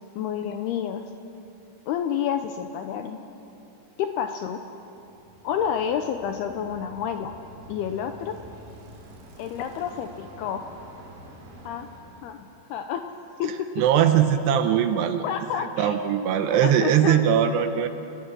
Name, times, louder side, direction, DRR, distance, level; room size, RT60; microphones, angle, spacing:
voice 1, 0.2-1.0 1.9-3.2 4.0-4.6 5.4-7.3 7.7-8.4 9.4-10.7 11.7-11.9 12.2-13.0 13.4-13.7 15.2-15.9 16.5-17.2, left 8 dB, 85° left, 6 dB, 2.3 m, -29 dB
Bicycle, 5.0-12.5, right 1 dB, 60° right, 4.8 m, -47 dB
voice 2, 13.8-15.2 15.6-17.9, right 9 dB, 75° right, 8 dB, 2.6 m, -21 dB
30.0 x 18.0 x 6.2 m, 2.9 s
omnidirectional pair, 5.4 m